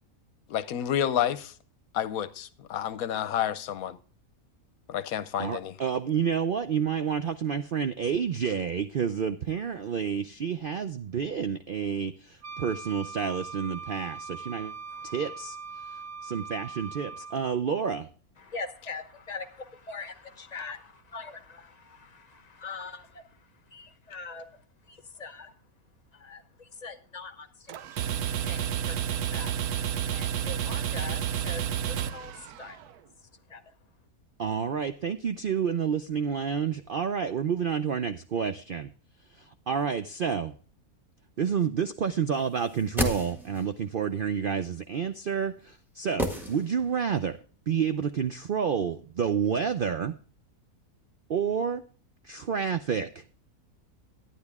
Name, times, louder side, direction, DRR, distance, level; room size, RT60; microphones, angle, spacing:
voice 1, 0.5-1.5 1.9-4.0 4.9-5.8, left 10 dB, 75° left, 1.1 m, -29 dB
voice 2, 5.4-14.7 15.0-15.6 16.2-18.1 34.4-38.9 39.7-40.5 41.4-47.4 47.7-50.1 51.3-51.8 52.2-53.2, right 7 dB, 65° right, 0.5 m, -29 dB
Wind instrument woodwind instrument, 12.4-17.6, right 5 dB, 40° right, 1.0 m, -41 dB
voice 3, 14.9-15.3 18.4-24.5 24.9-25.5 26.1-27.7 28.4-29.5 30.1-32.8 33.2-33.7, left 4 dB, 30° left, 0.9 m, -43 dB
sound 1, 27.7-32.9, right 9 dB, 85° right, 1.2 m, -30 dB
sound 2, 42.6-43.8 46.2-47.1 47.4-47.5, left 1 dB, ahead, 1.6 m, -32 dB
12.0 x 10.0 x 3.5 m
omnidirectional pair, 1.6 m